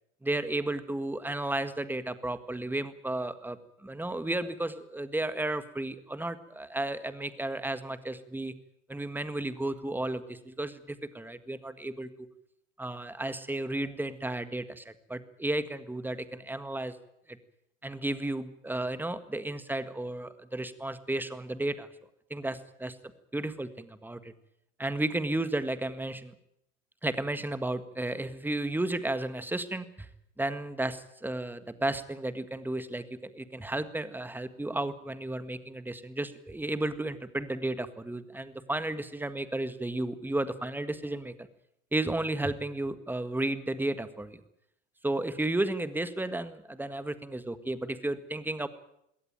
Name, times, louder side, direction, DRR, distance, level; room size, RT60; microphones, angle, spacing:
voice 1, 0.2-3.6 3.8-8.5 8.9-12.3 12.8-17.0 17.8-21.9 22.3-23.0 23.3-24.3 24.8-26.3 27.0-30.1 30.4-41.5 41.9-44.4 45.0-48.7, right 2 dB, 5° right, 13 dB, 1.7 m, -33 dB
21.0 x 18.0 x 9.2 m, 0.79 s
hypercardioid pair, 80°, 38 cm